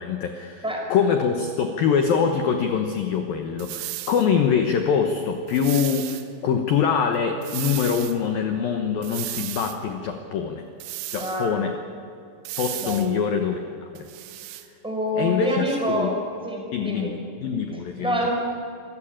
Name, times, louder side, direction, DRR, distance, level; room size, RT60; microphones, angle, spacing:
voice 1, 0.0-0.6 0.9-10.7 11.1-11.8 12.6-14.1 15.2-16.1 16.7-18.2, left 7 dB, 90° left, 5 dB, 2.0 m, -24 dB
sound 1, 3.6-4.3 5.5-6.3 7.4-8.2 9.0-9.8 10.8-11.5 12.5-13.1 14.0-14.7, right 15 dB, 80° right, 2.6 m, -34 dB
voice 2, 11.2-11.6 12.8-13.2 14.8-17.1 18.0-18.3, equal, ahead, 0 dB, 4.5 m, -27 dB
26.5 x 14.0 x 8.7 m, 2.5 s
omnidirectional pair, 6.0 m